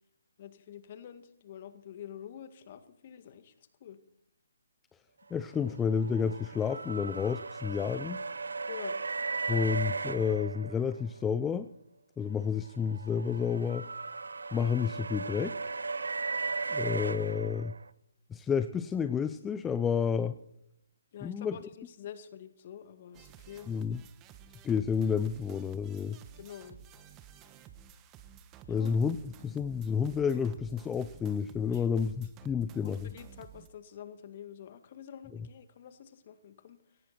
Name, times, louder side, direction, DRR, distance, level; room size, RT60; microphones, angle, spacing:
voice 1, 0.4-3.5 3.8-4.0 8.7-9.0 21.1-23.7 26.4-26.8 28.7-29.0 31.6-31.9 32.8-37.0, left 9 dB, 40° left, 10 dB, 1.9 m, -47 dB
voice 2, 5.3-8.2 9.5-11.7 12.2-13.9 14.5-15.6 16.7-17.7 18.3-20.4 21.2-21.6 23.7-24.0 24.6-26.2 28.7-29.2 29.4-33.1, left 6 dB, 10° left, 11 dB, 0.5 m, -30 dB
sound 1, 5.6-11.2 12.6-17.9, right 4 dB, 75° right, 0.8 m, -37 dB
sound 2, 23.1-33.7, right 8 dB, 20° right, 1.2 m, -53 dB
18.0 x 14.5 x 4.3 m, 0.77 s
figure-of-eight pair, 150°, 0 cm